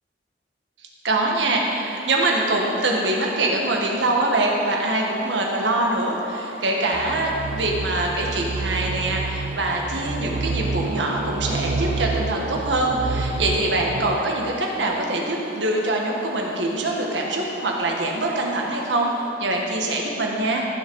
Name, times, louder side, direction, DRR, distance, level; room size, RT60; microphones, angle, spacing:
voice 1, 1.0-19.1 19.4-20.7, right 2 dB, 85° right, 0 dB, 1.5 m, -24 dB
sound 1, 1.5-19.3, right 1 dB, 30° right, 2.5 m, -41 dB
sound 2, 6.9-14.2, right 3 dB, 60° right, 0.4 m, -29 dB
14.5 x 6.2 x 4.7 m, 2.8 s
head